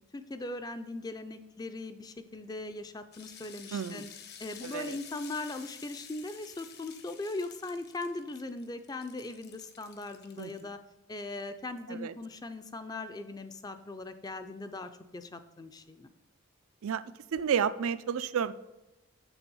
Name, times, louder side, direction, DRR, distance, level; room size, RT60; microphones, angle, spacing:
voice 1, 0.1-4.1 4.4-10.8 11.1-16.1, left 2 dB, 15° left, 9 dB, 0.4 m, -39 dB
sound 1, 3.1-10.6, left 8 dB, 45° left, 0.8 m, -51 dB
voice 2, 3.7-4.1 4.6-5.0 10.4-10.5 11.9-12.1 16.8-17.0 17.3-18.5, right 7 dB, 75° right, 14 dB, 0.4 m, -31 dB
7.0 x 6.7 x 5.4 m, 0.96 s
head